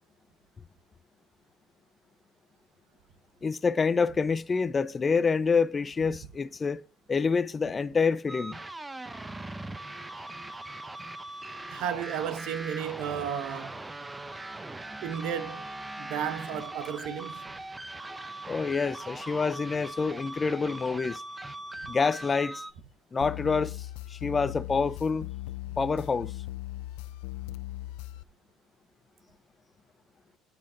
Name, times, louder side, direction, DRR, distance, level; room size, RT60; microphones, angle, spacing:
voice 1, 3.4-6.8 7.1-8.6 18.5-21.2 21.9-22.6 23.1-25.3 25.8-26.3, left 5 dB, 25° left, 0.4 m, -27 dB
sound 1, 8.3-22.7, right 2 dB, 10° right, 0.7 m, -40 dB
voice 2, 11.7-13.9 15.0-15.7 16.0-17.4 21.8-21.9, right 9 dB, 70° right, 1.1 m, -33 dB
sound 2, 23.2-28.2, left 15 dB, 85° left, 0.6 m, -38 dB
9.6 x 5.7 x 3.7 m
cardioid pair, 110°, 0 cm